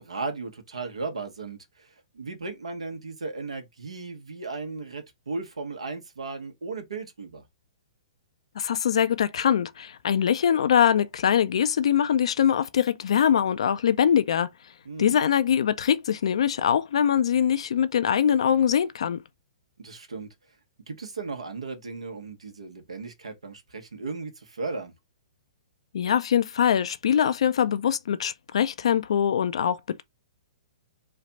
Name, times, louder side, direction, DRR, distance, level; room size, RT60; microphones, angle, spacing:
voice 1, 0.0-7.4 14.8-15.2 19.8-20.3 20.9-24.9, right 3 dB, 85° right, 1.2 m, -36 dB
voice 2, 8.6-14.5 15.0-19.2 25.9-30.0, left 8 dB, 70° left, 0.4 m, -23 dB
3.2 x 2.4 x 4.0 m
hypercardioid pair, 130°, 3 cm